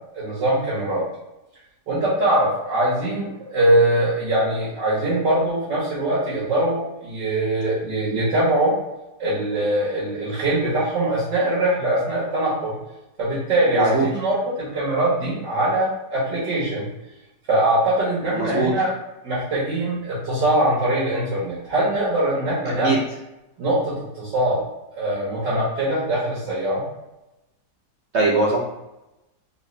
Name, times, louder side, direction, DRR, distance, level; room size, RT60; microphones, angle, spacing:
voice 1, 0.1-1.0 1.9-8.7 9.2-12.8 13.2-16.9 17.5-18.9 19.2-22.9 23.6-24.6 25.0-26.8, right 1 dB, 75° right, -9 dB, 1.9 m, -22 dB
voice 2, 13.7-14.1 18.3-18.7 22.8-23.0 28.1-28.6, right 3 dB, 60° right, -4 dB, 0.7 m, -20 dB
3.9 x 3.2 x 3.1 m, 0.94 s
omnidirectional pair, 1.9 m